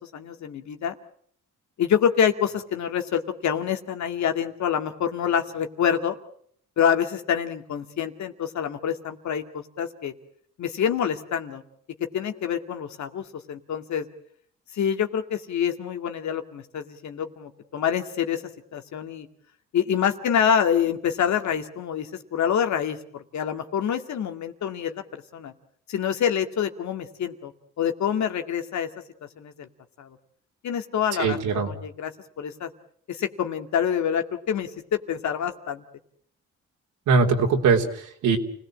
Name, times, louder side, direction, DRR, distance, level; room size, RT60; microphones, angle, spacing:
voice 1, 0.1-0.9 1.8-6.2 6.8-10.1 10.6-11.6 12.1-14.1 14.7-18.4 18.7-19.3 19.7-25.5 25.9-27.5 27.8-28.9 29.4-29.7 30.0-30.2 30.6-32.1 32.4-32.7 33.1-35.8, left 8 dB, 65° left, 6 dB, 2.3 m, -26 dB
voice 2, 31.2-31.7 37.1-38.4, right 4 dB, 80° right, 1 dB, 3.6 m, -21 dB
29.5 x 17.5 x 7.6 m, 0.64 s
cardioid pair, 90°, 30 cm